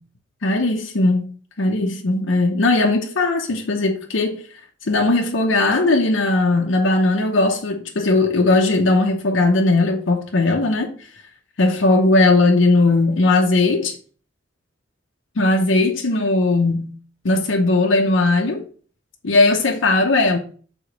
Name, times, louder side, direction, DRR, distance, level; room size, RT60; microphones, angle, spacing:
voice 1, 0.4-4.4 4.9-10.9 11.6-13.9 15.4-16.9 17.2-18.6 19.2-20.4, left 2 dB, 80° left, 0.8 m, -18 dB
4.9 x 3.8 x 5.1 m
head